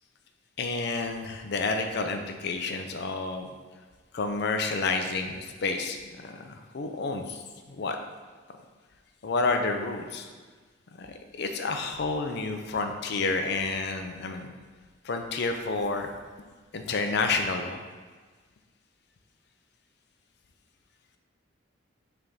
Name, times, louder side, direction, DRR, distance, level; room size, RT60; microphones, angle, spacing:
voice 1, 0.6-3.5 4.1-8.0 9.2-10.3 11.0-14.5 15.0-16.1 16.7-17.8, left 3 dB, 60° left, 5 dB, 0.5 m, -30 dB
5.8 x 3.4 x 5.3 m, 1.4 s
head